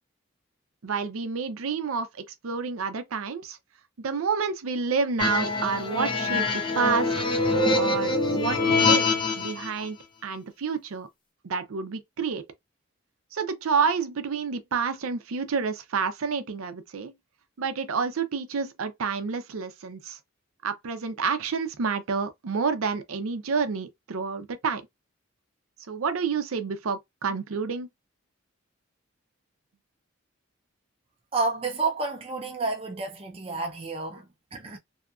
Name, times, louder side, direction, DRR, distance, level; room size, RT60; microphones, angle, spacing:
voice 1, 0.8-2.1 2.4-3.6 4.0-7.1 7.7-10.0 10.2-11.1 11.4-12.4 13.3-17.1 17.6-20.2 20.6-24.9 25.9-27.9, right 5 dB, 85° right, 0.5 m, -29 dB
sound 1, 5.2-9.7, left 3 dB, 25° left, 0.6 m, -24 dB
voice 2, 31.3-34.8, right 3 dB, 25° right, 0.5 m, -30 dB
2.7 x 2.3 x 2.4 m
head